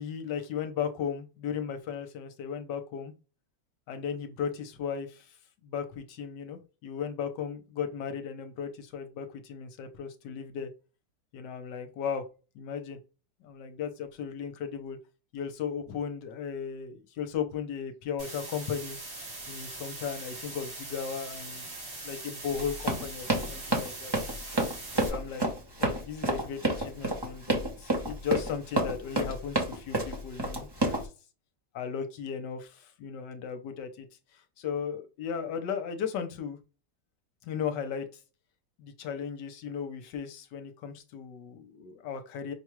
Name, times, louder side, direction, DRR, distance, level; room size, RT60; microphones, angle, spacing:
voice 1, 0.0-3.1 3.9-5.3 5.6-10.7 11.3-12.3 12.5-13.0 13.4-15.0 15.3-19.0 19.5-21.7 22.0-24.1 25.1-25.5 25.8-31.0 31.7-34.1 34.3-36.6 37.4-38.1 38.8-42.5, left 7 dB, 65° left, 7 dB, 1.3 m, -36 dB
sound 1, 18.2-25.1, right 2 dB, 75° right, 3.1 m, -41 dB
Run, 22.5-31.0, right 2 dB, 20° right, 0.6 m, -29 dB
5.8 x 2.3 x 3.1 m, 0.31 s
omnidirectional pair, 2.2 m